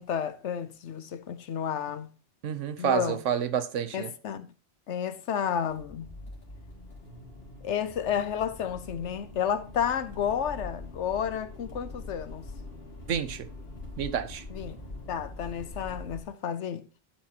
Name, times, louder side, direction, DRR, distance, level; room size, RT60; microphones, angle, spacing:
voice 1, 0.0-2.1 2.8-3.2 3.9-4.5 4.9-6.1 7.6-12.4 14.5-14.8 15.1-16.8, left 8 dB, 75° left, 1.1 m, -31 dB
voice 2, 2.4-4.1 13.1-13.5 14.0-14.4, right 8 dB, 90° right, 1.2 m, -29 dB
Accelerating revving vroom, 5.7-16.2, left 2 dB, 55° left, 2.3 m, -43 dB
11.5 x 7.2 x 2.8 m
omnidirectional pair, 1.2 m